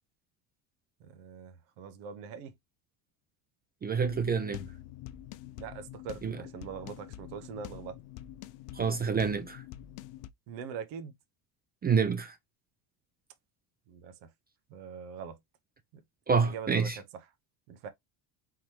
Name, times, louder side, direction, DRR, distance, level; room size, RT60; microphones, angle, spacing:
voice 1, 1.0-2.6 5.6-8.0 10.5-11.1 13.9-14.3 14.7-15.4 15.9-16.0 16.4-16.9 17.7-17.9, right 6 dB, 75° right, 1.0 m, -42 dB
voice 2, 3.8-4.6 6.2-6.4 8.7-9.6 11.8-12.4 16.3-17.0, right 5 dB, 20° right, 0.4 m, -28 dB
sound 1, 4.1-10.3, left 13 dB, 60° left, 0.6 m, -46 dB
3.9 x 3.1 x 2.8 m
supercardioid pair, 90°, 48 cm